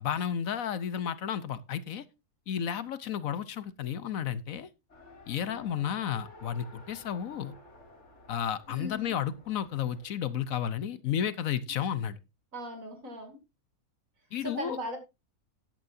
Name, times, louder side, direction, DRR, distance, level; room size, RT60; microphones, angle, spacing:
voice 1, 0.0-2.0 2.5-4.7 5.3-7.5 8.3-12.2 14.3-14.8, left 9 dB, 70° left, 1.2 m, -32 dB
Race car auto racing, 4.9-10.1, left 2 dB, 50° left, 2.7 m, -53 dB
voice 2, 8.7-9.2 11.7-11.8 12.5-13.4 14.4-15.0, equal, 60° right, 3.0 m, -39 dB
14.0 x 10.5 x 2.6 m
omnidirectional pair, 1.6 m